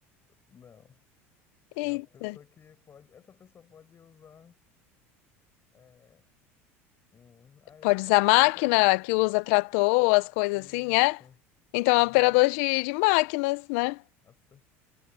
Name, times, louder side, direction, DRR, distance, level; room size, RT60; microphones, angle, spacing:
voice 1, 0.3-1.0 1.8-4.6 5.7-6.3 7.1-8.9 10.5-11.4 12.0-12.4 14.2-14.6, left 7 dB, 35° left, 7.4 m, -56 dB
voice 2, 1.8-2.3 7.8-11.1 11.7-14.0, left 26 dB, 75° left, 0.7 m, -23 dB
hypercardioid pair, 90°, 7 cm